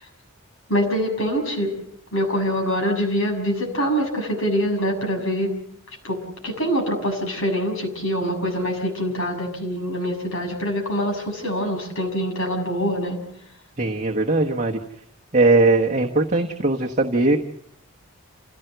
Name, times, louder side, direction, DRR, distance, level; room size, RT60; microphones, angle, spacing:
voice 1, 0.7-1.7 2.1-5.5 6.0-13.2, equal, 70° left, 2 dB, 6.9 m, -24 dB
voice 2, 13.8-14.8 15.3-17.4, right 2 dB, 35° right, 2 dB, 1.2 m, -19 dB
28.0 x 16.0 x 7.9 m, 0.69 s
head